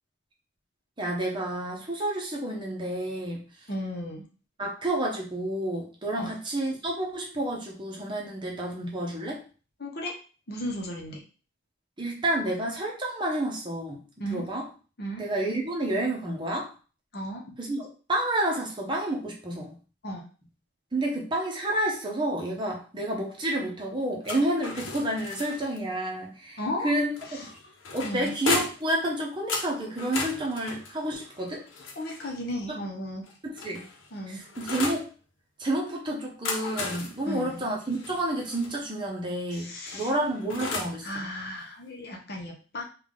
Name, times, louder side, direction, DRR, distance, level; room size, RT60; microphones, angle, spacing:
voice 1, 1.0-3.4 4.6-9.4 12.0-14.0 14.3-14.6 15.2-16.7 17.6-19.7 20.9-27.1 27.4-27.5 27.9-31.6 32.7-32.8 33.4-33.8 34.3-35.1 35.6-41.3, right 1 dB, 25° right, -1 dB, 0.7 m, -30 dB
voice 2, 3.7-4.3 6.1-6.4 9.8-10.1 10.5-11.2 14.2-14.5 15.0-15.2 17.1-17.4 20.0-20.3 26.6-26.9 27.3-27.5 28.0-28.3 32.0-33.3 34.1-34.5 37.3-37.7 39.5-40.1 41.0-42.8, equal, 55° left, 0 dB, 0.9 m, -35 dB
sound 1, 24.2-25.8 27.2-28.9 29.5-32.4 33.2-35.1 36.2-38.7 39.9-41.0, left 3 dB, 85° left, 0.8 m, -35 dB
3.5 x 2.4 x 3.6 m, 0.36 s
head